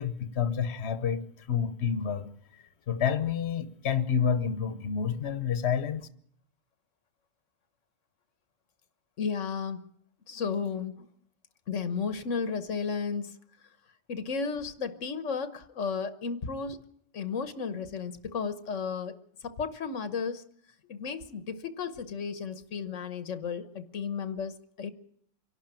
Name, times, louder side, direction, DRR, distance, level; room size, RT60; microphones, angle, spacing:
voice 1, 0.0-2.3 2.9-6.1, left 7 dB, 60° left, 12 dB, 1.3 m, -29 dB
voice 2, 9.2-9.8 10.3-11.1 11.7-13.3 14.1-16.8 17.1-19.2 19.4-20.4 20.9-24.9, left 5 dB, 85° left, 12 dB, 1.4 m, -33 dB
25.0 x 12.0 x 9.0 m, 0.66 s
omnidirectional pair, 1.3 m